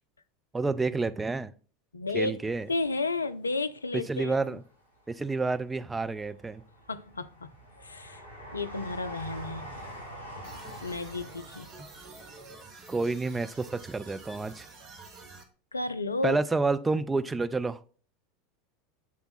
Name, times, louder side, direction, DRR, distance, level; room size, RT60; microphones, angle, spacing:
voice 1, 0.5-1.5 2.1-2.7 4.1-4.6 5.1-6.6 12.9-14.7 16.2-17.8, right 3 dB, 15° right, 0.4 m, -29 dB
voice 2, 1.9-2.4 2.7-4.6 6.9-7.5 7.8-8.2 8.5-9.7 10.8-11.7 15.7-16.4, left 3 dB, 80° left, 0.3 m, -32 dB
Train, 2.3-3.5 4.0-4.9 5.5-14.2 14.5-14.6, equal, 85° right, 1.9 m, -46 dB
sound 1, 10.4-15.4, right 3 dB, 35° right, 1.1 m, -49 dB
7.3 x 3.4 x 4.0 m
figure-of-eight pair, 80°, 0 cm